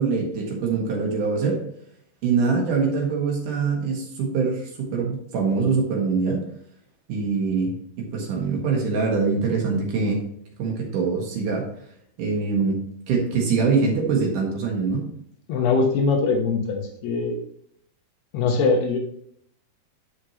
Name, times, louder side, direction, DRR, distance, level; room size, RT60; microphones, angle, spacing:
voice 1, 0.0-1.6 2.2-6.4 7.1-7.7 8.0-10.2 10.6-11.7 12.2-12.8 13.1-15.1, right 4 dB, 60° right, -1 dB, 2.9 m, -23 dB
voice 2, 15.5-17.4 18.3-19.0, left 4 dB, 80° left, 1 dB, 3.1 m, -22 dB
12.5 x 5.0 x 2.9 m, 0.68 s
omnidirectional pair, 4.5 m